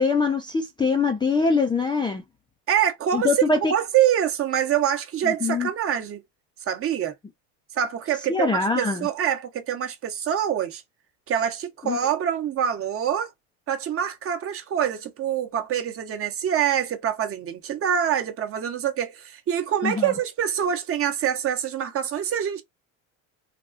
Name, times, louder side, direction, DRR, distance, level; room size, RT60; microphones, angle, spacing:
voice 1, 0.0-2.2 3.1-3.7 5.2-5.7 8.3-9.1 11.8-12.0 19.8-20.1, left 4 dB, 10° left, 0.4 m, -23 dB
voice 2, 2.7-3.4 3.7-6.2 6.7-7.1 7.7-10.8 11.3-13.3 13.7-22.6, right 9 dB, 35° right, 0.9 m, -25 dB
3.4 x 2.3 x 2.5 m
supercardioid pair, 110°, 39 cm